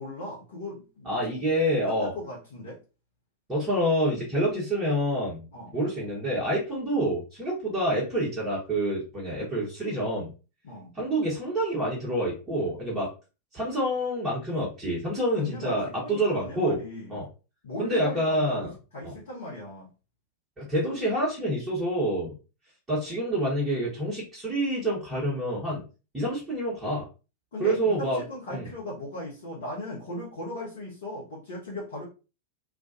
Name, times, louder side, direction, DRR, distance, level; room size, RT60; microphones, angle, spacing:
voice 1, 0.0-1.2 1.7-2.8 5.5-5.7 10.6-10.9 15.4-17.2 17.6-19.9 27.5-32.0, left 1 dB, 60° left, -5 dB, 0.8 m, -38 dB
voice 2, 1.0-2.1 3.5-5.5 5.7-10.3 10.9-13.1 13.5-16.8 17.1-17.2 17.8-18.7 20.6-22.3 22.9-25.8 26.1-27.0 27.6-28.2 28.5-28.7, right 1 dB, 15° right, -7 dB, 1.1 m, -27 dB
2.5 x 2.2 x 2.5 m, 0.32 s
figure-of-eight pair, 90°, 0 cm